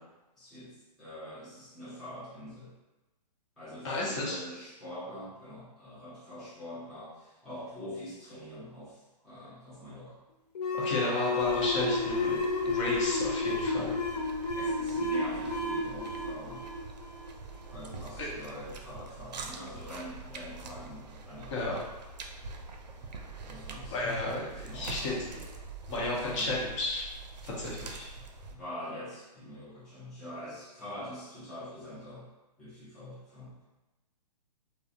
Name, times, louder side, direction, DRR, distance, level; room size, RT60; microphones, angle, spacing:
voice 1, 0.4-2.7 3.6-10.2 14.5-16.6 17.7-21.6 22.9-23.0 23.5-24.2 24.5-25.3 25.9-26.5 28.5-32.3 32.6-33.6, left 1 dB, ahead, -13 dB, 0.4 m, -44 dB
voice 2, 3.8-4.4 10.7-13.9 18.2-18.3 21.5-21.8 23.9-25.4 25.9-27.1 27.4-28.1, left 2 dB, 45° left, -4 dB, 0.8 m, -33 dB
sound 1, 10.5-17.8, left 3 dB, 70° left, 0.4 m, -31 dB
sound 2, 11.4-28.5, right 3 dB, 80° right, 0.4 m, -45 dB
2.3 x 2.0 x 2.6 m, 1.1 s
hypercardioid pair, 145°, 21 cm